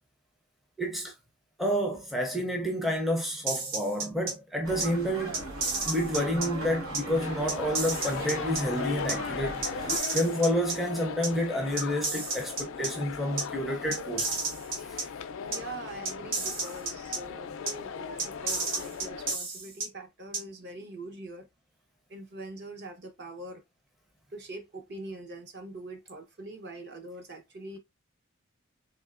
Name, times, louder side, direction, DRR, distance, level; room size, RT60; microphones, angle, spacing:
voice 1, 0.8-1.1 1.6-5.4 5.8-14.3 14.8-15.0, equal, ahead, 0.5 m, -29 dB
sound 1, 3.5-4.3 4.8-4.9 5.3-6.5 6.9-7.0 7.5-8.6 9.1-9.2 9.6-10.7 11.2-11.3 11.8-12.9 13.4-13.5 13.9-15.0 15.5-15.6 16.0-17.2 17.7-17.8 18.2-19.9 20.3-20.4, right 3 dB, 65° right, 1.1 m, -31 dB
sound 2, 4.6-10.0, right 1 dB, 90° right, 1.2 m, -38 dB
sound 3, 7.2-19.4, left 6 dB, 65° left, 0.4 m, -38 dB
voice 2, 15.5-21.5 22.1-23.6 24.3-27.8, right 2 dB, 50° right, 0.9 m, -43 dB
3.5 x 3.1 x 2.4 m
head